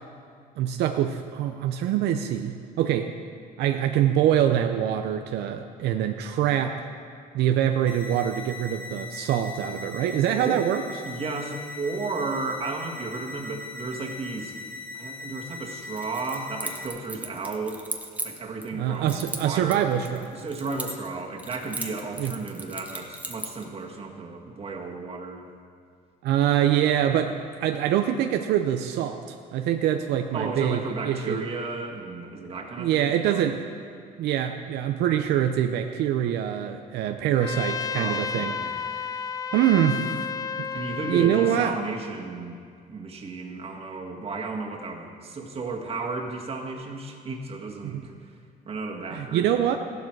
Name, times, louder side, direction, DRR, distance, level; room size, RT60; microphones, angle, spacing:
voice 1, 0.6-3.1 3.6-6.9 7.3-10.8 18.7-20.3 22.2-22.3 26.2-31.4 32.8-33.6 34.2-39.2 39.5-40.2 40.6-40.7 41.1-41.7 47.8-48.0 49.1-49.8, right 10 dB, 80° right, 6 dB, 0.6 m, -24 dB
sound 1, 7.9-16.9, left 3 dB, 55° left, 1.5 m, -40 dB
voice 2, 11.0-14.5 14.9-17.8 18.2-19.8 20.3-25.5 30.3-33.5 37.9-38.7 40.7-42.6 42.9-48.1 48.7-49.5, right 3 dB, 35° right, 0 dB, 1.9 m, -33 dB
Keys jangling, 16.0-18.7 19.1-21.1 21.4-23.6, right 2 dB, 10° right, 1.2 m, -36 dB
Trumpet, 37.4-41.7, left 5 dB, 20° left, 0.4 m, -32 dB
15.0 x 12.0 x 4.7 m, 2.2 s
cardioid pair, 110°, 17 cm